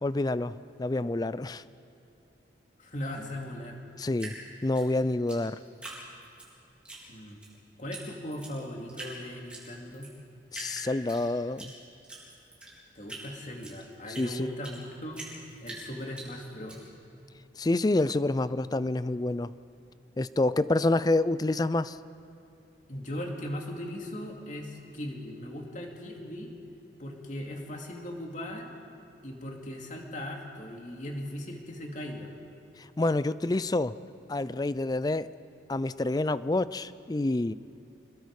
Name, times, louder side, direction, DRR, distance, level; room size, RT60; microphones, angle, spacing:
voice 1, 0.0-1.6 4.0-4.3 4.6-5.6 10.5-11.7 14.2-14.5 17.6-19.5 20.2-22.0 32.8-33.9 34.3-35.3 35.7-37.5, left 2 dB, 20° left, 16 dB, 0.4 m, -28 dB
voice 2, 2.8-3.8 7.1-7.4 7.8-10.1 12.9-15.2 15.6-16.9 22.9-26.5 27.0-28.7 29.2-32.3, left 1 dB, 40° left, 1 dB, 2.5 m, -38 dB
Drip, 4.2-6.5 6.8-7.5 7.9-8.0 8.3-9.1 9.5-10.1 10.5-11.7 12.0-14.8 15.1-16.8, right 2 dB, 5° right, 4.0 m, -43 dB
26.5 x 21.0 x 4.8 m, 2.8 s
head